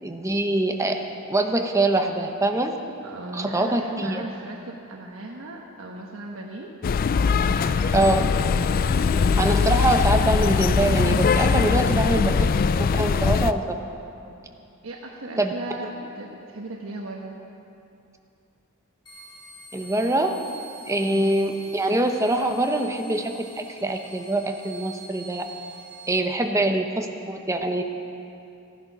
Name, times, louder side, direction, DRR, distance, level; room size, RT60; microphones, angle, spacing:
voice 1, 0.0-2.8 3.3-4.2 7.9-8.3 9.4-12.5 12.8-13.8 15.4-15.5 19.7-20.4 20.9-25.4 26.1-27.8, right 1 dB, 15° right, 5 dB, 0.8 m, -24 dB
voice 2, 3.0-6.7 7.3-8.3 9.0-9.3 14.3-14.4 14.8-17.3 21.0-21.3 26.4-26.7, right 2 dB, 70° right, 0 dB, 1.1 m, -37 dB
sound 1, 6.8-13.5, left 5 dB, 40° left, 0.3 m, -21 dB
sound 2, 19.1-26.2, right 3 dB, 20° left, 1.9 m, -46 dB
15.0 x 10.5 x 6.0 m, 2.7 s
head